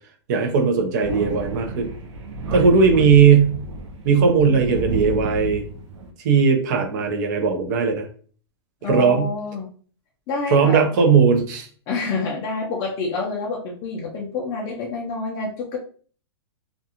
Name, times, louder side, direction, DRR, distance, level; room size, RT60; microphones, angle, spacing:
voice 1, 0.3-1.9 2.5-3.6 4.0-5.6 6.2-8.1 8.9-9.3 10.5-11.7, right 5 dB, 40° right, 4 dB, 0.6 m, -18 dB
Thunder, 1.0-6.1, right 2 dB, 80° right, 0.6 m, -30 dB
voice 2, 8.8-9.7 10.3-10.9 11.9-15.8, left 4 dB, 25° left, -3 dB, 0.4 m, -27 dB
2.5 x 2.2 x 2.8 m, 0.43 s
hypercardioid pair, 160°, 14 cm